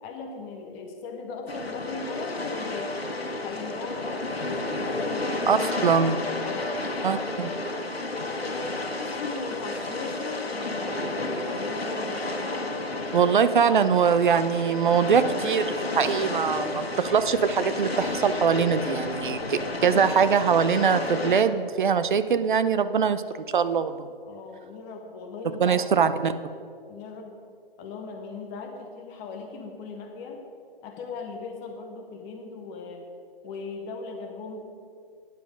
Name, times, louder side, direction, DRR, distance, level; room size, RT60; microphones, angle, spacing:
voice 1, 0.0-2.9 3.4-6.0 6.4-6.8 8.4-12.3 13.7-13.9 24.2-26.3 26.9-27.4 27.8-30.4 30.8-33.1 33.4-34.7, left 4 dB, 10° left, 2 dB, 0.5 m, -38 dB
sound 1, 1.5-21.4, left 2 dB, 85° left, 1.5 m, -31 dB
voice 2, 5.5-6.2 7.0-7.5 13.1-23.2 23.5-24.1 25.6-26.3, right 6 dB, 55° right, 12 dB, 0.6 m, -22 dB
11.5 x 9.4 x 5.2 m, 2.3 s
figure-of-eight pair, 140°, 30 cm